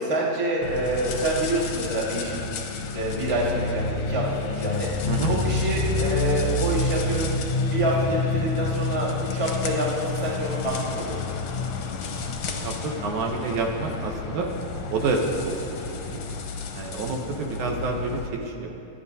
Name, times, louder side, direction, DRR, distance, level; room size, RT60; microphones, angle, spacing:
voice 1, 0.0-2.5 2.9-7.3 7.7-11.1, right 1 dB, 20° right, -5 dB, 0.8 m, -27 dB
sound 1, 0.6-18.3, left 3 dB, 70° left, 1.6 m, -29 dB
voice 2, 12.6-14.5 14.9-16.2 16.7-18.7, right 3 dB, 70° right, 1 dB, 2.1 m, -28 dB
26.0 x 9.7 x 2.7 m, 2.8 s
omnidirectional pair, 3.9 m